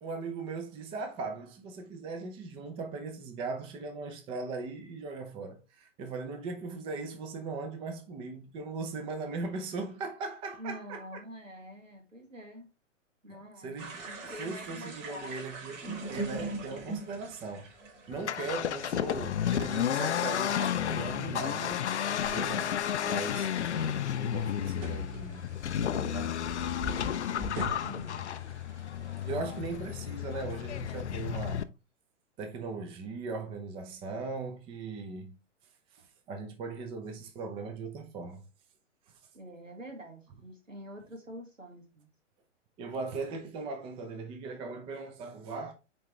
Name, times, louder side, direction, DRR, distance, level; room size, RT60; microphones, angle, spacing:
voice 1, 0.0-11.2 13.3-13.4 13.6-17.7 18.1-21.8 22.3-22.7 23.0-25.5 25.8-26.5 29.2-31.7 32.4-35.4 35.9-38.4 42.8-45.7, right 3 dB, 15° right, 0.6 m, -39 dB
voice 2, 10.6-12.7 13.2-15.3 27.3-28.4 29.3-29.6 39.3-42.1, equal, 85° right, 2.2 m, -46 dB
sound 1, 13.8-29.9, right 2 dB, 35° right, 3.0 m, -44 dB
Accelerating revving vroom, 18.1-31.6, left 9 dB, 60° left, 0.6 m, -32 dB
8.6 x 3.7 x 3.2 m
figure-of-eight pair, 115°, 38 cm